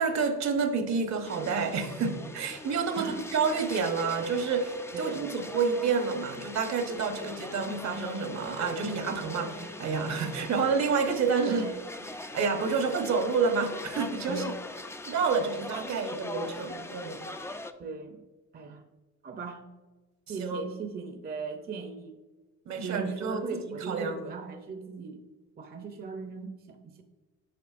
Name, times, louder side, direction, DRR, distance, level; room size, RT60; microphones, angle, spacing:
voice 1, 0.0-11.6 12.3-14.4 15.0-17.2 20.4-20.6 22.7-23.4 23.8-24.2, right 5 dB, 65° right, 6 dB, 1.0 m, -29 dB
sound 1, 1.2-17.7, left 2 dB, 10° left, 0.3 m, -41 dB
voice 2, 3.0-3.3 4.9-5.5 11.5-11.8 14.3-14.5 17.8-18.2 18.5-18.9 19.2-19.6 20.3-22.1 22.7-25.2 25.6-27.0, right 5 dB, 30° right, 6 dB, 0.6 m, -38 dB
7.6 x 5.4 x 2.5 m, 1.2 s
cardioid pair, 90°, 30 cm